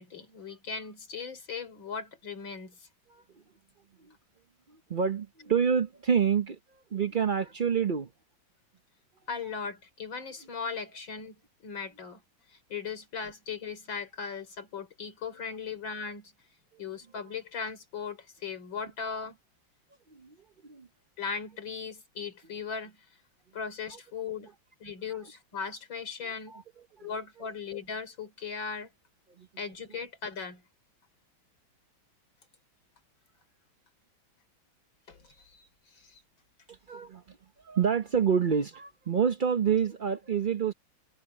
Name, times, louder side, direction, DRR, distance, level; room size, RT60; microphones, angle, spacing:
voice 1, 0.0-2.9 9.3-12.2 12.5-16.3 16.8-19.4 21.2-23.1 23.5-24.5 24.8-26.6 27.0-28.9 29.6-30.6 35.1-36.2, left 5 dB, 70° left, 4.4 m, -38 dB
voice 2, 4.9-6.6 6.9-8.1 20.2-20.3 20.6-20.9 26.5-26.6 27.0-27.1 29.4-29.5 36.9-37.2 37.6-40.7, right 7 dB, 75° right, 0.4 m, -27 dB
omnidirectional pair, 2.2 m